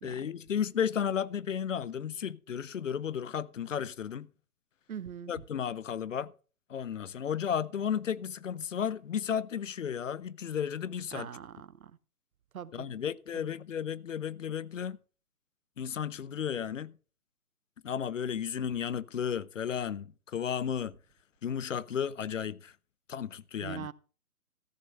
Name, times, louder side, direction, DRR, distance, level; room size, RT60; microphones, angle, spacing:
voice 1, 0.0-4.3 5.3-6.3 6.7-11.3 12.7-15.0 15.8-16.9 17.8-21.0 21.4-22.7 23.1-23.9, left 8 dB, 60° left, 0.6 m, -33 dB
voice 2, 4.9-5.3 11.1-11.9 12.5-12.9 13.3-13.4 23.6-23.9, right 8 dB, 65° right, 0.7 m, -42 dB
13.5 x 6.7 x 5.3 m
hypercardioid pair, 155°, 45 cm